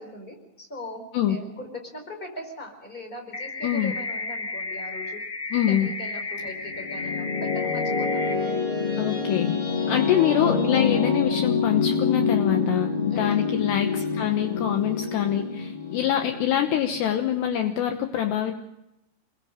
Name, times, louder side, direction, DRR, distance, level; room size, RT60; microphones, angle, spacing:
voice 1, 0.0-5.2 5.7-8.2 9.6-10.1 13.1-13.5, left 1 dB, 10° left, 4 dB, 4.4 m, -40 dB
sound 1, 3.3-8.3, left 3 dB, 35° left, 3.1 m, -33 dB
voice 2, 5.5-5.9 9.0-9.5 9.9-12.9 13.2-18.5, left 10 dB, 70° left, 5 dB, 3.0 m, -25 dB
sound 2, 6.5-17.5, left 5 dB, 55° left, 7.8 m, -26 dB
27.0 x 21.5 x 5.2 m, 0.89 s
omnidirectional pair, 5.4 m